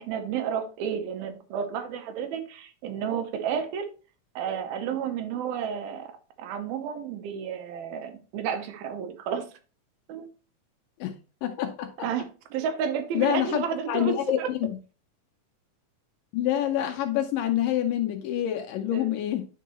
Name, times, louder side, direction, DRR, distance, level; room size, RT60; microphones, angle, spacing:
voice 1, 0.0-3.9 4.4-6.1 6.4-9.5 10.1-10.3 12.0-14.5 18.9-19.1, right 7 dB, 80° right, 2.6 m, -31 dB
voice 2, 11.0-11.9 13.1-14.8 16.3-19.5, left 12 dB, 80° left, 2.0 m, -27 dB
9.1 x 4.6 x 2.9 m
omnidirectional pair, 4.3 m